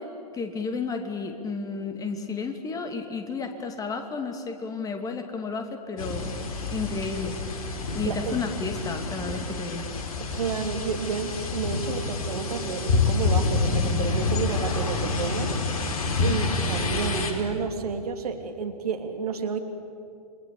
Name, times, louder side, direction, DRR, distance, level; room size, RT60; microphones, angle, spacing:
voice 1, 0.0-7.4 7.9-9.9, left 4 dB, 15° left, 6 dB, 2.5 m, -32 dB
sound 1, 6.0-17.3, left 3 dB, 60° left, 4.4 m, -28 dB
voice 2, 8.0-8.4 10.3-15.5 16.2-19.6, right 5 dB, 65° right, 6 dB, 3.0 m, -30 dB
28.5 x 25.0 x 8.5 m, 2.5 s
figure-of-eight pair, 110°, 21 cm